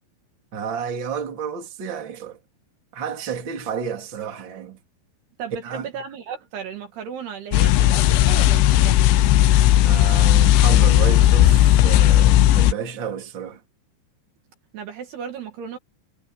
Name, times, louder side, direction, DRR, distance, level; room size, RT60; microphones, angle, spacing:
voice 1, 0.5-2.4 2.9-4.8 5.6-5.9 9.8-13.6, right 7 dB, 30° right, 3.2 m, -31 dB
voice 2, 5.4-9.0 14.7-15.8, right 7 dB, 65° right, 3.9 m, -35 dB
sound 1, 7.5-12.7, left 13 dB, 85° left, 3.4 m, -15 dB
omnidirectional pair, 5.4 m